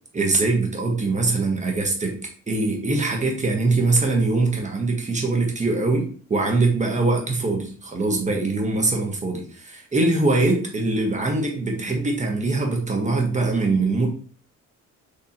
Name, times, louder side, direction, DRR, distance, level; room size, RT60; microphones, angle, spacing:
voice 1, 0.1-2.2 2.5-14.1, right 3 dB, 25° right, 1 dB, 1.2 m, -22 dB
4.1 x 3.3 x 2.9 m, 0.43 s
cardioid pair, 90°, 30 cm